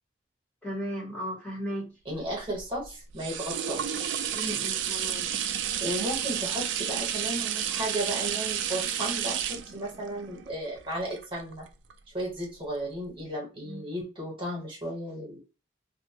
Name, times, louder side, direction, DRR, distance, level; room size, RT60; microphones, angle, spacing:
voice 1, 0.6-1.9 4.3-5.3 13.6-13.8, equal, 5° left, -5 dB, 0.9 m, -35 dB
voice 2, 2.0-4.1 5.8-11.7 12.1-15.4, right 1 dB, 25° right, -2 dB, 1.1 m, -34 dB
sound 1, 2.2-11.9 12.4-12.5, right 9 dB, 65° right, 0.3 m, -31 dB
2.7 x 2.2 x 2.8 m, 0.30 s
head